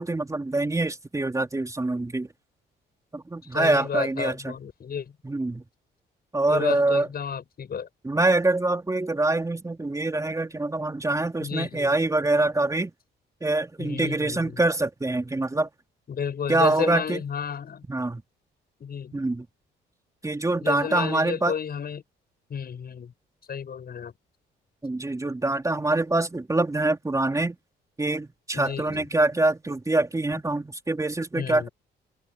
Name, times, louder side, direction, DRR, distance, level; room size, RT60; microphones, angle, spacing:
voice 1, 0.0-2.3 3.1-4.5 5.2-5.6 6.3-7.1 8.0-12.9 13.4-15.7 16.5-17.2 17.9-18.2 19.1-19.4 20.2-21.5 24.8-27.6 28.0-31.7, right 2 dB, 15° right, 3.3 m, -25 dB
voice 2, 3.5-5.1 6.5-7.9 11.4-11.9 13.8-14.6 16.1-17.8 18.8-19.3 20.6-22.0 22.5-23.1 23.5-24.1 28.5-29.1 31.4-31.7, left 7 dB, 50° left, 7.2 m, -32 dB
open air
cardioid pair, 90°, 20 cm